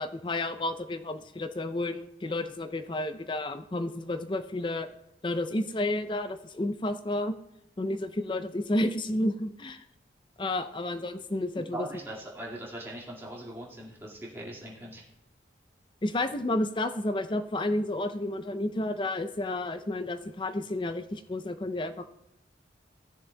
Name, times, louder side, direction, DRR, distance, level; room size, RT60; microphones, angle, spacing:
voice 1, 0.0-4.9 5.2-7.3 7.8-9.8 10.4-11.9 16.0-22.1, left 1 dB, 25° left, 9 dB, 0.5 m, -31 dB
voice 2, 11.7-15.0, right 1 dB, 15° right, -5 dB, 1.9 m, -40 dB
16.0 x 7.1 x 2.2 m, 0.83 s
head